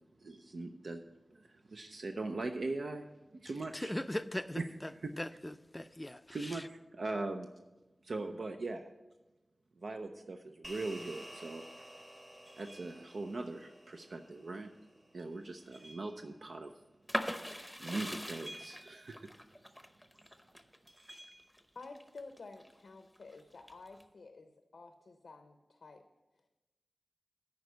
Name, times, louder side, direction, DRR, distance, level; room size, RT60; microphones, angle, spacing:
voice 1, 0.2-1.0 1.3-3.0 3.3-3.9 4.6-4.7 5.0-5.1 6.3-7.5 8.0-8.9 9.8-11.9 12.6-14.7 15.1-16.7 17.8-19.3, right 2 dB, 75° right, 5 dB, 0.5 m, -40 dB
voice 2, 3.7-6.7, left 1 dB, 15° left, 12 dB, 0.4 m, -40 dB
sound 1, 10.6-15.3, equal, 20° right, 1.2 m, -53 dB
sound 2, 12.4-13.2 15.2-16.3 18.3-19.2 20.9-21.4, right 1 dB, 55° right, 1.8 m, -54 dB
sound 3, 17.1-22.7 23.2-24.0, equal, ahead, 0.8 m, -41 dB
voice 3, 21.7-26.0, left 3 dB, 85° left, 6 dB, 0.6 m, -51 dB
9.4 x 5.2 x 8.0 m, 1.1 s
wide cardioid pair, 55°, 0 cm